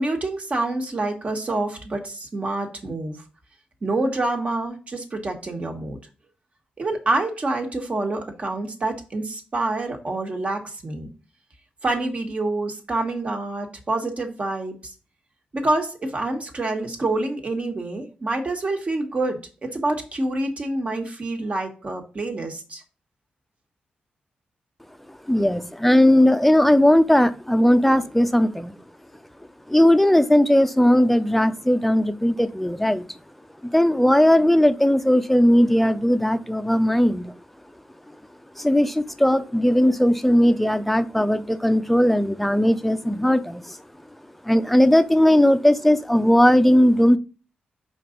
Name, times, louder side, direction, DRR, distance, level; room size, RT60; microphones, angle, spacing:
voice 1, 0.0-3.2 3.8-6.0 6.8-11.1 11.8-14.8 15.5-22.8, right 2 dB, 45° right, 3 dB, 1.6 m, -27 dB
voice 2, 25.1-28.7 29.7-33.0 33.6-37.3 38.6-43.8 44.4-47.2, left 1 dB, 5° left, 10 dB, 0.6 m, -18 dB
5.1 x 3.9 x 5.1 m, 0.35 s
cardioid pair, 75°, 3 cm